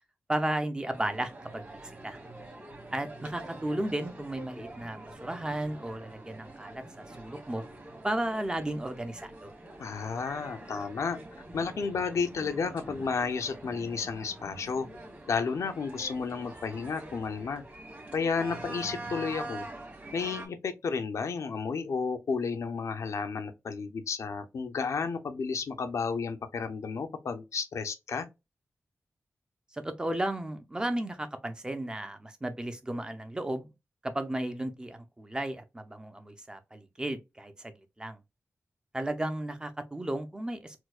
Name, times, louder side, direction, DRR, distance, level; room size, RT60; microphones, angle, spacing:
voice 1, 0.3-2.2 2.9-6.8 7.2-7.6 8.0-9.5 29.7-33.7 34.0-37.7 38.0-38.2 38.9-40.8, right 1 dB, 15° right, 0.5 m, -34 dB
sound 1, 0.9-20.5, right 2 dB, 30° right, 1.3 m, -45 dB
voice 2, 9.8-11.2 11.5-14.9 15.3-17.6 18.1-19.7 20.1-28.3, left 5 dB, 80° left, 0.5 m, -32 dB
4.3 x 2.1 x 2.3 m
wide cardioid pair, 140°, 5 cm